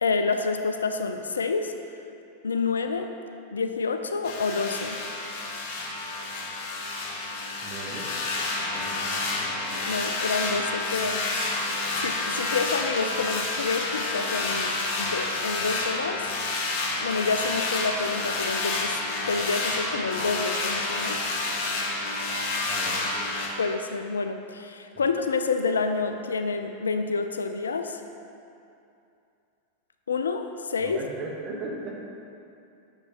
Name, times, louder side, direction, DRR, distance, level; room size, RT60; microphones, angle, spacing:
voice 1, 0.0-1.7 2.4-3.1 3.5-5.0 9.9-11.2 12.0-16.3 17.0-19.0 19.3-21.2 23.6-28.0 30.1-31.0, left 4 dB, 70° left, 7 dB, 0.3 m, -28 dB
sound 1, 4.2-23.5, left 2 dB, 45° left, 0.9 m, -29 dB
voice 2, 7.6-8.1 8.7-9.6 22.6-23.0 24.9-25.0 30.8-31.9, right 2 dB, 25° right, -2 dB, 1.2 m, -38 dB
7.8 x 6.7 x 3.0 m, 2.6 s
figure-of-eight pair, 90°, 0 cm